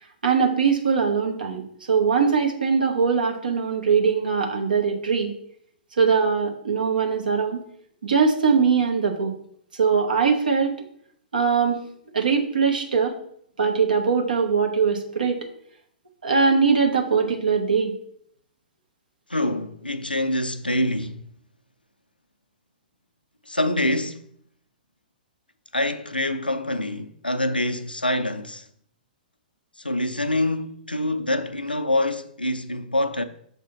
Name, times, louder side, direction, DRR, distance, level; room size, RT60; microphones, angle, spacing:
voice 1, 0.2-5.3 6.0-7.6 8.0-9.3 9.7-10.8 11.3-11.8 12.1-13.2 13.6-15.4 16.2-17.9, right 5 dB, 70° right, 1.0 m, -21 dB
voice 2, 19.3-21.3 23.5-24.3 25.7-28.7 29.8-33.2, left 1 dB, 85° left, 0.5 m, -25 dB
6.6 x 3.4 x 4.3 m
figure-of-eight pair, 110°, 5 cm